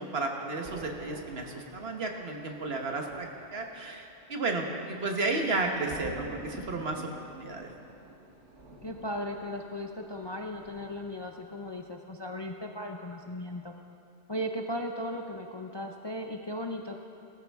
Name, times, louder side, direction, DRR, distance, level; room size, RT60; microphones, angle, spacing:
voice 1, 0.0-7.0 7.3-7.7, right 3 dB, 60° right, 2 dB, 1.4 m, -33 dB
Thunder, 0.6-11.2 11.5-11.8, right 2 dB, 90° right, 1.8 m, -48 dB
voice 2, 8.8-13.8 14.3-17.0, left 1 dB, 30° left, 2 dB, 0.5 m, -37 dB
18.0 x 14.0 x 3.5 m, 2.6 s
omnidirectional pair, 1.2 m